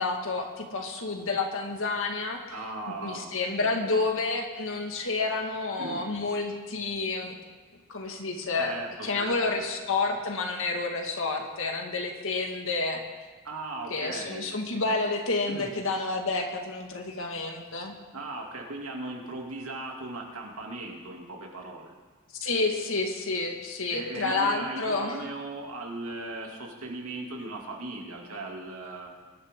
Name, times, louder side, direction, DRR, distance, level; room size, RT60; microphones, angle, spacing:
voice 1, 0.0-2.4 2.9-7.4 7.9-8.8 9.0-13.0 13.9-17.9 22.4-25.3, left 3 dB, 65° left, 3 dB, 1.9 m, -29 dB
voice 2, 2.5-4.0 5.8-6.0 8.6-9.6 13.4-14.5 15.5-15.7 18.1-21.9 23.9-29.1, right 2 dB, 75° right, 0 dB, 2.6 m, -38 dB
22.5 x 11.5 x 3.7 m, 1.4 s
head